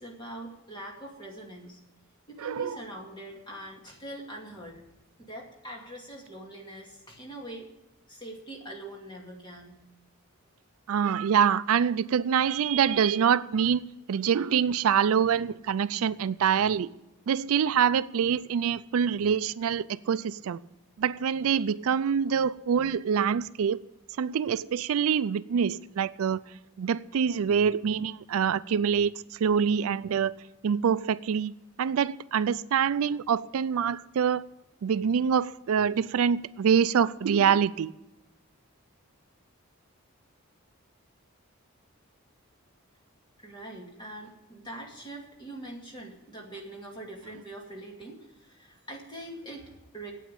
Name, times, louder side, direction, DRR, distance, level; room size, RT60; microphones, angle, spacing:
voice 1, 0.0-1.8 2.3-4.8 5.2-7.7 8.1-9.7 43.4-50.1, right 1 dB, 20° left, 2.3 m, -43 dB
voice 2, 2.4-2.8 10.9-13.8 14.1-16.9 17.3-20.6 21.0-23.8 24.2-26.4 26.8-30.3 30.6-31.5 31.8-34.4 34.8-37.9, right 7 dB, 75° right, 0.4 m, -25 dB
9.2 x 8.5 x 8.7 m
head